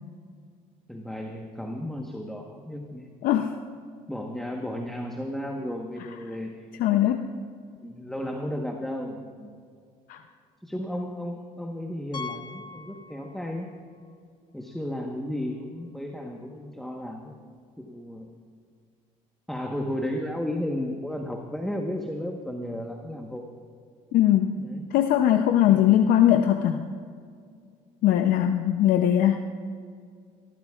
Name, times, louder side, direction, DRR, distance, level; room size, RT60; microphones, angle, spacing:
voice 1, 0.9-3.1 4.1-6.9 7.8-9.5 10.6-13.7 14.5-17.3 17.8-18.3 19.5-23.4 24.6-24.9 25.7-25.9, left 1 dB, ahead, 1 dB, 1.2 m, -34 dB
voice 2, 3.2-3.5 6.7-7.3 10.1-10.2 24.1-24.6 24.9-26.9 28.0-29.4, left 11 dB, 70° left, 6 dB, 0.7 m, -20 dB
Piano, 12.1-13.7 14.0-14.2 14.7-14.8 15.1-15.2 17.3-17.4, left 4 dB, 30° left, 0.8 m, -41 dB
25.0 x 14.0 x 2.4 m, 2.1 s
cardioid pair, 100°, 15 cm